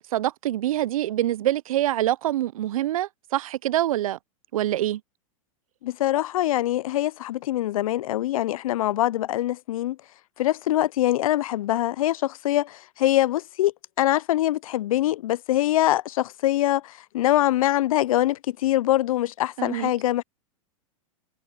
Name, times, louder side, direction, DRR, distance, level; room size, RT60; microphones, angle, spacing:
voice 1, 0.0-4.2 4.5-5.0 19.6-19.9, right 13 dB, 75° right, 0.5 m, -25 dB
voice 2, 5.8-10.0 10.4-20.2, left 14 dB, 75° left, 0.5 m, -24 dB
hypercardioid pair, 115°, 18 cm